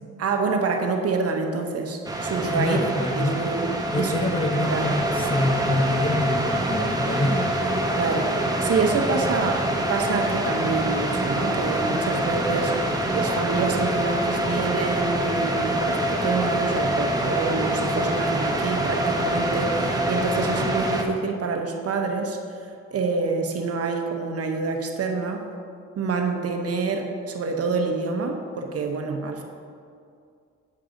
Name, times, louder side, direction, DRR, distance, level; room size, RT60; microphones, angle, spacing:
voice 1, 0.2-3.6 4.0-4.8 7.9-12.8 13.1-25.4 26.0-29.4, right 4 dB, 50° right, 3 dB, 0.9 m, -27 dB
sound 1, 2.0-21.0, right 1 dB, 10° right, 0.9 m, -25 dB
voice 2, 2.5-3.5 3.9-7.5 20.6-20.7, left 1 dB, 20° left, 3 dB, 0.6 m, -26 dB
8.4 x 6.6 x 3.8 m, 2.3 s
cardioid pair, 90°, 30 cm